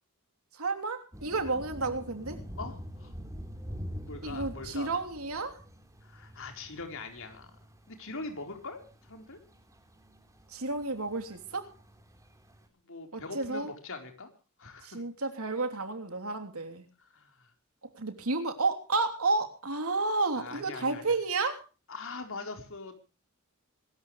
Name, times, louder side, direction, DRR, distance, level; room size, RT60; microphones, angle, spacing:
voice 1, 0.5-2.4 4.2-5.6 10.5-11.7 13.1-13.7 14.8-16.9 17.9-21.6, right 3 dB, 75° right, 5 dB, 3.3 m, -31 dB
sound 1, 1.1-12.7, equal, 15° right, 3.7 m, -46 dB
voice 2, 2.6-3.1 4.0-4.9 6.0-7.5 7.9-9.4 12.8-14.3 14.6-15.0 17.0-17.5 20.4-21.0 21.9-23.0, left 3 dB, 65° left, 5 dB, 4.2 m, -42 dB
25.0 x 13.5 x 3.2 m, 0.34 s
head